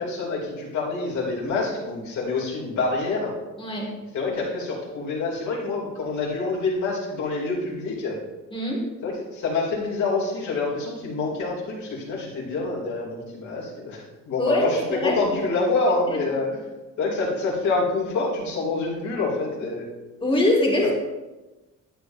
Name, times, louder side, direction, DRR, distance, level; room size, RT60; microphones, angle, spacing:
voice 1, 0.0-3.3 4.1-8.2 9.0-16.6 17.0-19.9, left 3 dB, 60° left, -4 dB, 2.5 m, -27 dB
voice 2, 3.6-3.9 8.5-8.8 14.4-15.2 20.2-20.9, left 1 dB, 15° left, -2 dB, 1.9 m, -22 dB
11.5 x 8.0 x 2.6 m, 1.1 s
cardioid pair, 145°, 32 cm